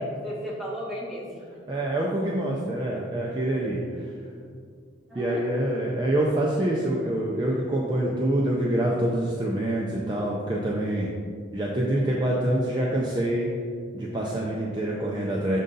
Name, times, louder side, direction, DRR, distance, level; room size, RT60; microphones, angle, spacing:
voice 1, 0.0-1.4 5.1-6.0, equal, ahead, -8 dB, 1.3 m, -34 dB
voice 2, 1.7-3.8 5.1-11.1 11.5-13.5 13.9-15.6, right 1 dB, 25° right, -3 dB, 0.5 m, -26 dB
6.5 x 3.8 x 3.9 m, 2.1 s
head